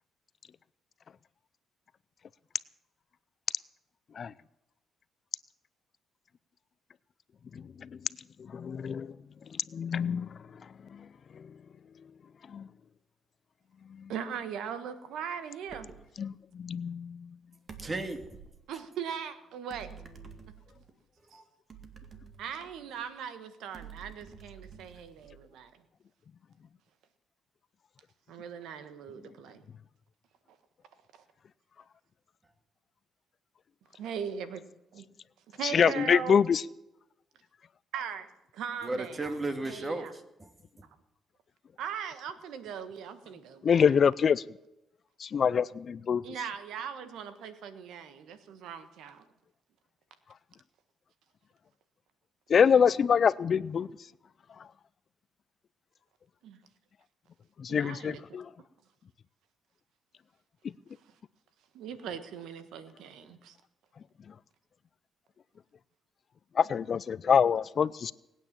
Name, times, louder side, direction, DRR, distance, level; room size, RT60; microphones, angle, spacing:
voice 1, 8.5-9.1 9.7-10.3 12.5-12.6 16.2-16.3 16.6-17.2 35.7-36.6 43.6-44.4 45.2-46.2 52.5-53.9 57.6-58.4 66.6-68.1, left 7 dB, 50° left, 0.5 m, -25 dB
voice 2, 14.1-15.9 18.7-19.9 21.3-21.4 22.4-25.7 28.3-29.7 31.1-31.2 34.0-34.6 34.9-35.0 35.5-36.4 37.9-38.3 38.5-39.4 39.6-40.1 41.8-44.0 46.2-49.2 56.4-56.6 57.7-58.2 61.7-63.6, right 7 dB, 85° right, 1.4 m, -39 dB
sound 1, 15.7-16.2 17.7-18.6 19.7-20.9 21.7-23.1 23.7-25.6, right 6 dB, 45° right, 2.0 m, -50 dB
voice 3, 17.8-18.4 18.7-18.9 21.3-21.5 38.8-40.9, right 2 dB, 30° right, 2.1 m, -36 dB
20.0 x 9.0 x 7.5 m
cardioid pair, 90°, 0 cm